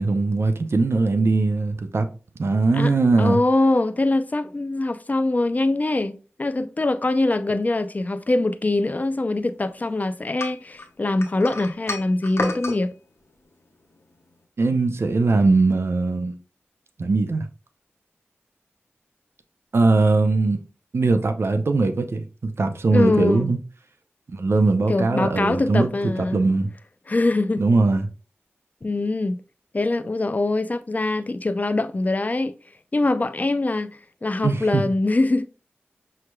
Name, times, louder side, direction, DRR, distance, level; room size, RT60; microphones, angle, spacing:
voice 1, 0.0-2.1 2.4-3.4 14.6-16.3 17.0-17.5 19.7-20.6 20.9-23.6 24.3-25.9 26.2-26.7 27.6-28.1 34.4-34.8, right 3 dB, 70° right, 0.6 m, -20 dB
voice 2, 3.2-12.9 22.9-23.5 24.9-26.4 27.1-27.6 28.8-29.4 29.7-32.5 32.9-35.5, left 2 dB, 35° left, 0.5 m, -23 dB
sound 1, 10.4-12.8, left 2 dB, 80° left, 0.8 m, -30 dB
5.6 x 3.2 x 2.2 m
wide cardioid pair, 55°, 4 cm